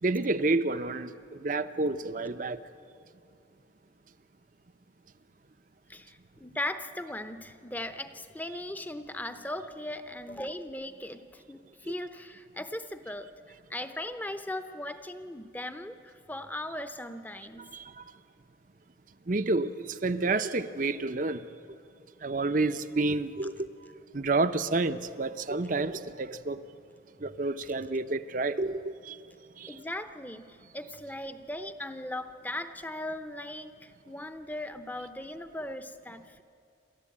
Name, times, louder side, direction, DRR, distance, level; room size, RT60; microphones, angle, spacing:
voice 1, 0.0-2.6 11.8-11.9 17.7-18.0 19.3-21.4 22.2-23.7 24.1-26.6 27.2-29.2 29.6-29.8, right 3 dB, 45° right, 0.7 m, -29 dB
voice 2, 5.9-13.3 13.7-17.7 27.2-27.4 29.7-36.4, left 1 dB, 10° left, 0.8 m, -38 dB
28.5 x 13.5 x 8.6 m
head